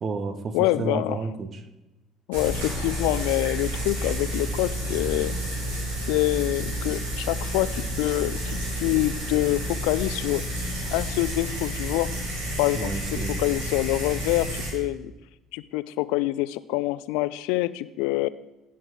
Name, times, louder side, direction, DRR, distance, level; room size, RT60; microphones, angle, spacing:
voice 1, 0.0-1.6 12.7-13.5, right 4 dB, 45° right, 11 dB, 1.2 m, -31 dB
voice 2, 0.5-1.2 2.3-5.3 6.1-10.4 10.9-12.1 12.6-13.0 13.4-15.1 15.5-18.3, left 18 dB, 65° left, 17 dB, 0.4 m, -26 dB
sound 1, 2.3-14.7, equal, 75° right, 3.5 m, -30 dB
16.0 x 6.0 x 4.8 m, 1.0 s
figure-of-eight pair, 55°, 0 cm